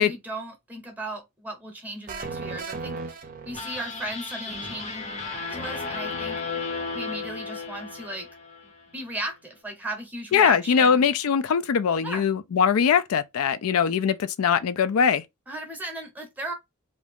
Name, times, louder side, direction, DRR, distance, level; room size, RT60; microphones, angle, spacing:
voice 1, 0.0-6.6 6.9-8.3 8.6-11.1 12.0-12.2 15.5-16.5, right 1 dB, 5° right, 0.8 m, -36 dB
sound 1, 2.1-4.1, right 4 dB, 40° right, 0.4 m, -36 dB
sound 2, 3.5-8.8, left 4 dB, 30° left, 0.6 m, -34 dB
voice 2, 10.3-15.2, left 7 dB, 80° left, 0.4 m, -21 dB
2.6 x 2.4 x 3.4 m
head